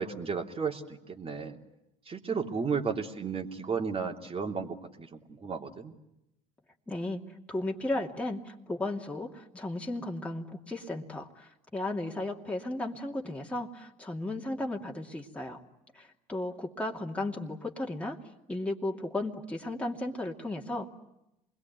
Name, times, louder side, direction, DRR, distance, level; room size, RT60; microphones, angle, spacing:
voice 1, 0.0-1.6 2.1-5.9, right 5 dB, 30° right, 3 dB, 3.2 m, -34 dB
voice 2, 6.9-15.6 15.9-18.2 18.5-20.9, left 2 dB, 5° left, -1 dB, 2.6 m, -35 dB
27.0 x 21.5 x 9.5 m, 0.86 s
supercardioid pair, 85°, 20 cm